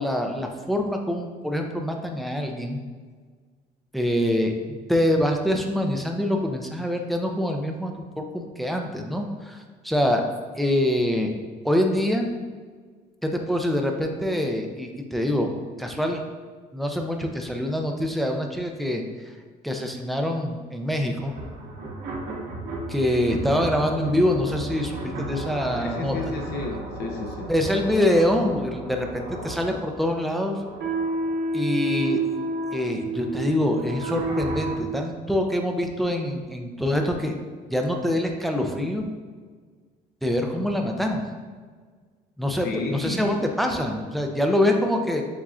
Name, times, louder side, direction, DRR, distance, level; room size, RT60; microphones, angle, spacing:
voice 1, 0.0-2.8 3.9-4.5 4.9-10.2 10.6-11.3 11.6-12.3 13.2-15.5 15.8-16.2 16.7-19.0 19.6-21.3 22.9-26.3 27.5-30.6 31.5-32.2 32.7-37.4 37.7-39.1 40.2-41.2 42.4-45.2, left 1 dB, ahead, 3 dB, 0.4 m, -25 dB
sound 1, 21.3-34.8, right 2 dB, 80° right, 1.1 m, -32 dB
sound 2, 24.1-29.7, right 3 dB, 45° right, 0.7 m, -45 dB
voice 2, 25.8-27.5 42.6-43.3, left 3 dB, 70° left, 1 dB, 0.8 m, -32 dB
7.2 x 2.5 x 2.4 m, 1.5 s
cardioid pair, 110°, 17 cm